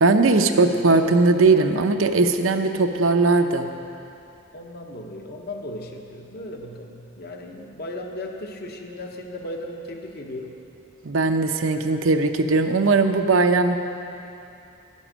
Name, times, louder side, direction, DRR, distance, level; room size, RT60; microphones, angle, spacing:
voice 1, 0.0-3.7 11.0-13.8, right 3 dB, 75° right, 6 dB, 0.7 m, -19 dB
voice 2, 4.5-10.5, left 1 dB, 50° left, 2 dB, 1.1 m, -36 dB
11.0 x 9.7 x 6.2 m, 2.7 s
head